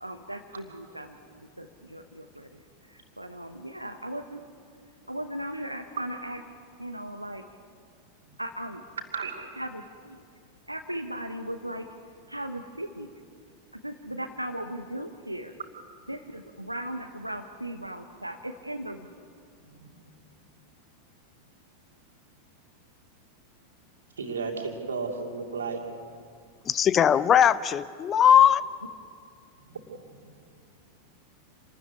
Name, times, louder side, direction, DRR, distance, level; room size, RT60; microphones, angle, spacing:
voice 1, 0.0-4.4 5.1-6.4 6.8-7.5 8.4-8.8 9.6-10.2 10.7-11.9 12.3-13.1 13.7-15.5 16.1-19.1, right 1 dB, 85° right, 0.9 m, -37 dB
voice 2, 19.7-20.1 24.2-25.8 29.7-30.3, right 4 dB, 70° right, 2.7 m, -34 dB
voice 3, 26.7-28.6, left 9 dB, 25° left, 0.5 m, -19 dB
27.0 x 13.5 x 9.8 m
figure-of-eight pair, 90°, 0 cm